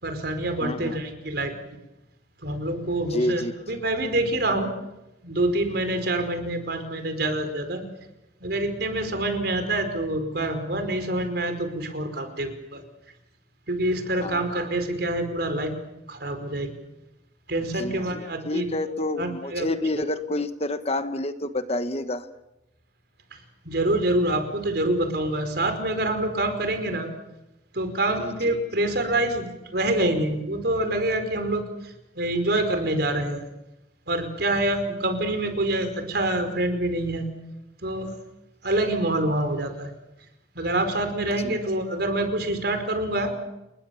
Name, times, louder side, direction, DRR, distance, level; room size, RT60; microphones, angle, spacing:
voice 1, 0.0-1.5 2.4-4.7 5.2-7.8 8.4-12.8 13.7-15.7 16.1-16.7 17.5-18.7 19.2-19.7 23.3-27.1 27.7-33.5 34.1-37.3 37.8-38.2 38.6-39.9 40.5-43.4, right 1 dB, 60° right, 7 dB, 4.9 m, -26 dB
voice 2, 0.6-1.0 3.1-3.5 14.2-14.5 17.8-22.3 28.2-28.6 41.4-41.6, left 1 dB, 35° left, 10 dB, 1.3 m, -29 dB
29.0 x 21.0 x 7.2 m, 0.93 s
head